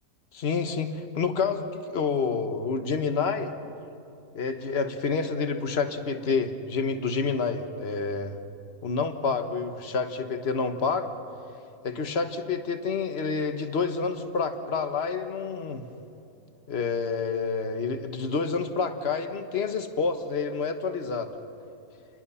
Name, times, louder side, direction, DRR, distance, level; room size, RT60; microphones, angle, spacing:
voice 1, 0.3-3.5 4.3-8.4 8.8-11.1 11.8-15.8 16.7-21.3, left 5 dB, 45° left, 8 dB, 1.5 m, -28 dB
29.5 x 20.5 x 5.7 m, 2.7 s
omnidirectional pair, 1.6 m